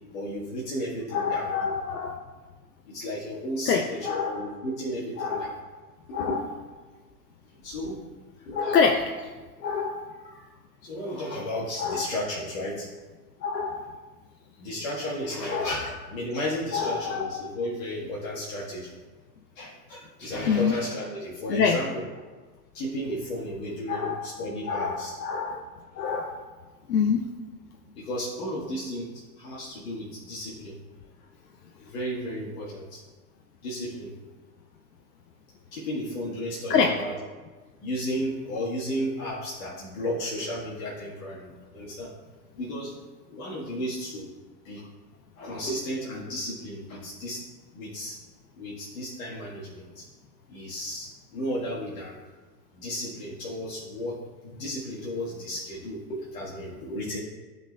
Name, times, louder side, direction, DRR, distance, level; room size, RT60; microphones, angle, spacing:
voice 1, 0.1-1.5 2.9-4.0 4.2-5.5 6.1-6.4 7.6-8.0 8.4-8.6 10.8-12.9 14.6-19.0 19.5-22.0 22.7-25.2 27.9-29.1 29.4-30.8 31.8-33.0 33.6-34.1 35.7-37.1 37.8-42.1 42.5-43.0 43.3-44.3 44.6-44.9 45.4-47.4 47.7-48.2 48.5-50.0 50.5-52.2 52.7-57.2, equal, 55° left, -6 dB, 1.5 m, -33 dB
voice 2, 1.1-2.2 3.7-4.5 5.2-5.7 6.1-6.4 8.5-9.3 9.6-10.3 11.8-12.1 13.4-14.0 15.5-15.8 16.7-17.4 20.5-20.7 21.5-21.8 23.9-24.4 24.7-25.6 26.0-26.5 26.9-27.2 36.7-36.9, left 6 dB, 70° left, 4 dB, 0.7 m, -26 dB
12.0 x 4.0 x 2.2 m, 1.4 s
hypercardioid pair, 105°, 50 cm